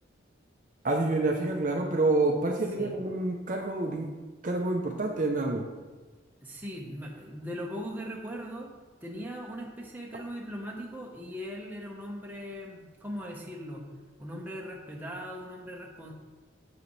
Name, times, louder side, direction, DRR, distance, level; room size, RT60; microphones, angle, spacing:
voice 1, 0.8-4.2 4.4-5.7, right 2 dB, 45° right, 2 dB, 0.6 m, -28 dB
voice 2, 6.4-8.7 9.0-13.8 14.2-16.1, equal, 10° right, -2 dB, 1.0 m, -39 dB
7.8 x 7.1 x 3.2 m, 1.3 s
head